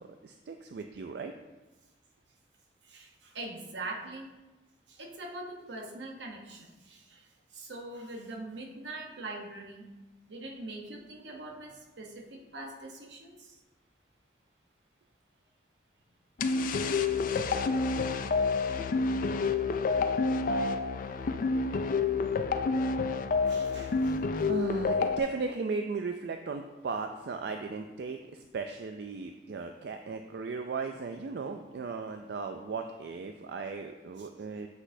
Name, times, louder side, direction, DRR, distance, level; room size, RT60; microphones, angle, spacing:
voice 1, 0.0-1.3 24.5-34.7, right 4 dB, 65° right, 5 dB, 0.4 m, -36 dB
voice 2, 2.8-4.3 4.9-9.9 10.3-13.6 17.5-18.1 21.8-22.3 23.5-24.2 34.2-34.3, right 2 dB, 80° right, 1 dB, 1.0 m, -43 dB
sound 1, 16.4-25.2, left 4 dB, 50° left, 0.4 m, -28 dB
7.9 x 6.0 x 2.7 m, 1.1 s
head